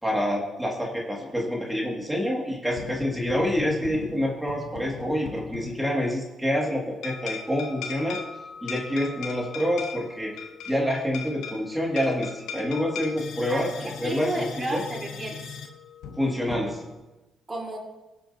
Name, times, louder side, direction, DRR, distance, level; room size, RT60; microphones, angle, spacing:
voice 1, 0.0-8.2 8.6-10.3 10.7-14.8 16.2-16.8, equal, 5° right, -2 dB, 2.4 m, -27 dB
sound 1, 2.7-6.3 7.0-17.0, left 6 dB, 85° left, 1.2 m, -39 dB
voice 2, 13.5-15.6 16.7-16.8 17.5-17.8, right 2 dB, 25° right, -3 dB, 4.1 m, -33 dB
22.5 x 7.6 x 2.9 m, 1.0 s
cardioid pair, 90°, 0 cm